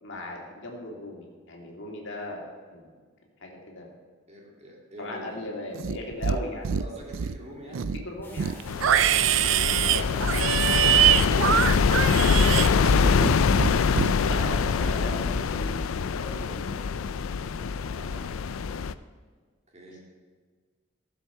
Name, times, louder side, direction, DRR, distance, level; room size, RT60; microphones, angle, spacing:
voice 1, 0.0-2.9 3.4-3.9 5.0-6.8 7.7-8.6 9.9-10.2 12.2-12.3 14.2-16.8, left 2 dB, 60° left, 0 dB, 2.5 m, -37 dB
voice 2, 4.3-5.5 6.8-7.9 9.2-12.5 17.9-18.4 19.7-20.0, right 1 dB, 35° right, -1 dB, 2.6 m, -46 dB
Livestock farm animals working animals, 5.7-6.4 6.6-7.4 7.7-13.3 13.6-14.1, right 10 dB, 65° right, 0.4 m, -23 dB
sound 1, 8.2-13.4, equal, 10° left, 2.4 m, -44 dB
sound 2, 8.7-18.9, left 5 dB, 85° left, 0.4 m, -24 dB
14.5 x 7.4 x 5.6 m, 1.5 s
head